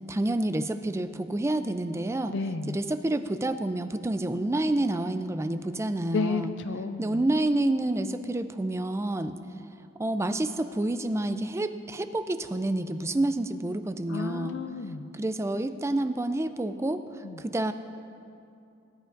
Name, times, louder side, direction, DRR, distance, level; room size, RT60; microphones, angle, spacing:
voice 1, 0.1-2.4 2.7-6.5 7.0-9.4 10.0-14.6 15.1-17.7, right 1 dB, 15° right, 10 dB, 0.3 m, -28 dB
voice 2, 2.3-2.8 6.1-7.1 14.1-15.1 17.2-17.4, left 3 dB, 60° left, 9 dB, 0.4 m, -31 dB
19.5 x 11.5 x 2.5 m, 2.6 s
head